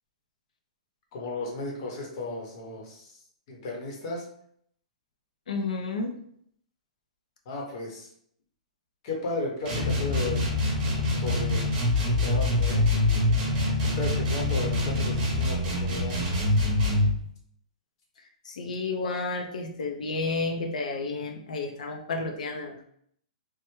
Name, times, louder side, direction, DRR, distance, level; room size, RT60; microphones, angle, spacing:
voice 1, 1.1-3.2 3.5-4.2 7.5-8.1 9.0-10.4 11.2-11.7 12.1-13.3 14.0-16.2, left 2 dB, 40° left, -1 dB, 0.9 m, -35 dB
voice 2, 5.5-6.1 18.4-22.8, left 3 dB, 75° left, 3 dB, 0.6 m, -31 dB
sound 1, 9.7-17.2, left 2 dB, 20° right, 0.8 m, -25 dB
3.3 x 2.1 x 3.1 m, 0.67 s
hypercardioid pair, 160°, 4 cm